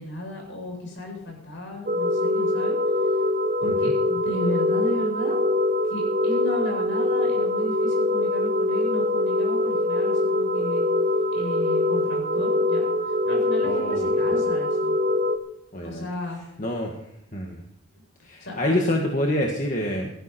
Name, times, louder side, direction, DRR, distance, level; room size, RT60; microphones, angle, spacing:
voice 1, 0.0-2.8 3.6-5.4 5.9-10.9 11.3-14.9 15.8-16.4 17.9-18.0 18.4-18.7, left 1 dB, 60° left, 0 dB, 7.9 m, -34 dB
sound 1, 1.9-15.4, left 2 dB, 40° right, 1.5 m, -23 dB
voice 2, 13.6-14.4 15.7-16.1 16.6-16.9 17.3-17.6 18.2-20.1, left 1 dB, 35° left, 1 dB, 1.9 m, -27 dB
18.0 x 14.5 x 4.5 m, 0.79 s
head